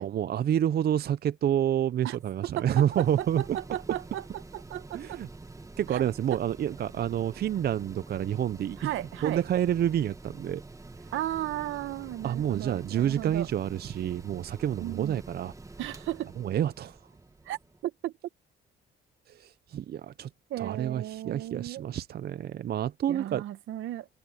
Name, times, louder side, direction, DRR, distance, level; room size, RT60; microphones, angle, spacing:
voice 1, 0.0-3.6 4.9-5.3 5.8-8.9 9.2-10.6 12.2-15.5 16.4-17.0 19.3-20.3 20.6-23.4, right 10 dB, 55° right, 0.5 m, -28 dB
Mechanical fan, 1.5-17.8, right 3 dB, 15° right, 1.3 m, -47 dB
voice 2, 2.4-5.2 5.9-6.0 6.3-6.4 8.8-9.4 11.1-13.5 14.8-15.2 15.8-16.3 17.5-18.1 20.5-21.9 23.1-24.1, right 13 dB, 80° right, 1.0 m, -35 dB
open air
cardioid pair, 90°, 20 cm